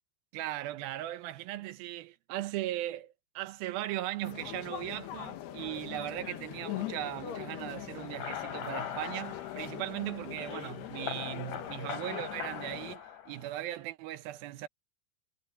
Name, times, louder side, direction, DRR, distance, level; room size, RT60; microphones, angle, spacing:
voice 1, 0.3-14.7, right 14 dB, 75° right, 2.3 m, -38 dB
sound 1, 4.2-13.0, left 13 dB, 75° left, 3.3 m, -42 dB
sound 2, 8.0-13.8, left 9 dB, 50° left, 3.8 m, -42 dB
omnidirectional pair, 4.9 m